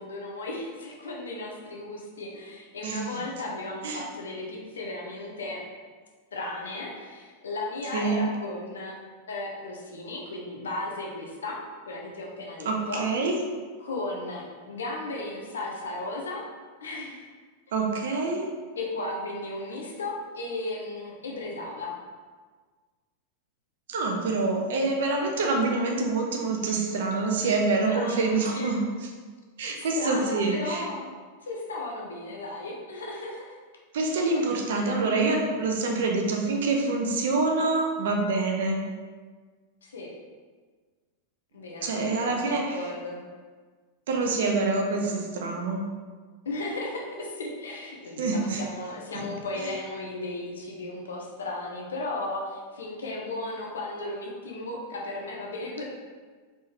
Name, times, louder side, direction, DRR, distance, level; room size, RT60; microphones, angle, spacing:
voice 1, 0.0-5.6 6.3-9.0 9.3-11.6 11.9-13.1 13.8-16.4 16.8-17.2 18.8-21.9 27.9-28.7 29.6-31.1 31.4-33.6 34.3-34.5 39.8-40.1 41.5-43.2 46.4-55.8, left 2 dB, 70° left, -1 dB, 0.8 m, -35 dB
voice 2, 7.9-8.2 12.7-13.3 17.7-18.5 23.9-29.1 29.6-30.8 33.9-38.8 41.8-42.8 44.1-45.8 48.2-48.6 49.1-49.2, right 3 dB, 60° right, 2 dB, 0.6 m, -26 dB
4.3 x 3.4 x 3.1 m, 1.5 s
figure-of-eight pair, 90°, 0 cm